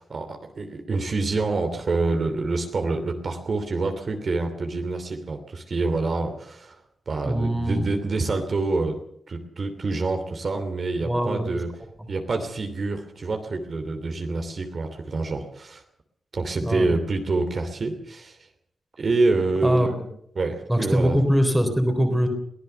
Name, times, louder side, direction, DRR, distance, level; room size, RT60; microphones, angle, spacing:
voice 1, 0.0-6.8 7.1-9.0 9.3-11.7 12.1-15.8 16.3-18.4 19.0-19.9 20.3-21.2, right 3 dB, 40° right, 5 dB, 2.9 m, -26 dB
voice 2, 7.2-7.8 11.0-11.6 16.6-16.9 19.6-20.1 20.7-22.3, equal, 5° right, 5 dB, 3.7 m, -22 dB
23.0 x 17.5 x 6.9 m, 0.68 s
wide cardioid pair, 165°, 0 cm